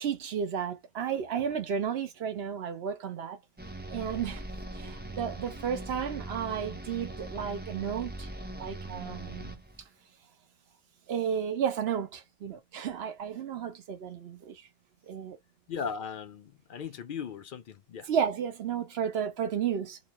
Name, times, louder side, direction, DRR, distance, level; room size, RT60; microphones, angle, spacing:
voice 1, 0.0-3.4 3.9-4.4 4.8-8.3 8.6-9.6 11.1-14.6 15.1-15.4 18.0-20.0, right 8 dB, 80° right, 1.0 m, -33 dB
sound 1, 3.6-9.9, right 1 dB, 15° right, 0.5 m, -41 dB
voice 2, 15.7-18.1, left 6 dB, 60° left, 0.7 m, -38 dB
3.0 x 2.0 x 2.9 m
omnidirectional pair, 1.0 m